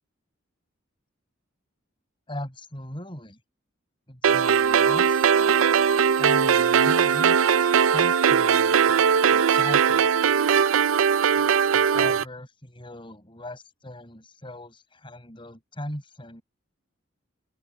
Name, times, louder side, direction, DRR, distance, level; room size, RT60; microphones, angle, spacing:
voice 1, 2.3-3.4 4.1-5.9 6.2-7.4 7.7-10.1 11.4-16.4, left 1 dB, 25° left, 6.6 m, -39 dB
sound 1, 4.2-12.2, right 7 dB, 90° right, 0.5 m, -20 dB
open air
head